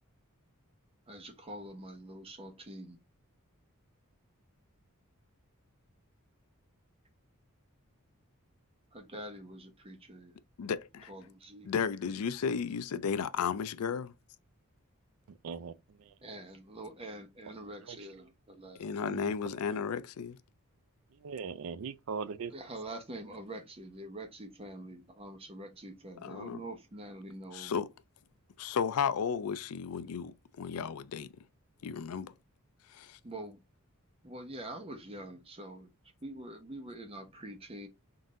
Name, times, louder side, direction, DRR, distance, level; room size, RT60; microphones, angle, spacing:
voice 1, 1.1-3.0 8.9-10.3 11.1-11.7 16.2-18.8 22.5-27.8 33.2-33.6 34.2-35.9 36.2-37.9, right 1 dB, 25° right, 0.9 m, -45 dB
voice 2, 10.6-11.1 11.7-14.1 18.8-20.4 26.2-26.6 27.5-27.9 28.6-31.3 31.8-32.3 32.9-33.2, left 6 dB, 80° left, 0.4 m, -34 dB
voice 3, 15.3-16.2 17.5-18.3 19.1-19.8 21.1-23.0, right 6 dB, 65° right, 0.4 m, -42 dB
3.9 x 2.6 x 3.7 m
head